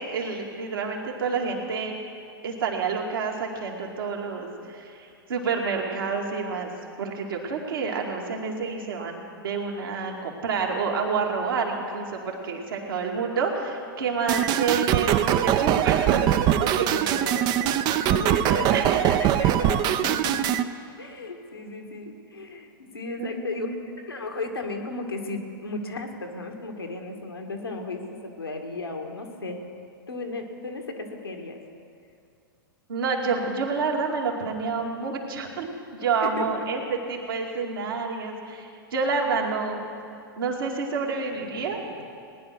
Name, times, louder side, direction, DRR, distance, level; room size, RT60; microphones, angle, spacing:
voice 1, 0.0-1.9 2.4-6.7 7.0-16.3 16.6-17.2 18.7-19.0 23.2-23.8 32.9-36.8 37.1-39.9 40.4-41.8, right 5 dB, 70° right, 0 dB, 2.4 m, -29 dB
sound 1, 14.3-20.6, right 11 dB, 35° right, 0.6 m, -22 dB
voice 2, 16.9-20.7 21.0-23.7 24.1-29.6 30.1-31.6 36.2-36.9 41.3-42.1, left 2 dB, 90° left, 2 dB, 1.9 m, -35 dB
19.0 x 10.5 x 6.2 m, 2.4 s
figure-of-eight pair, 105°, 12 cm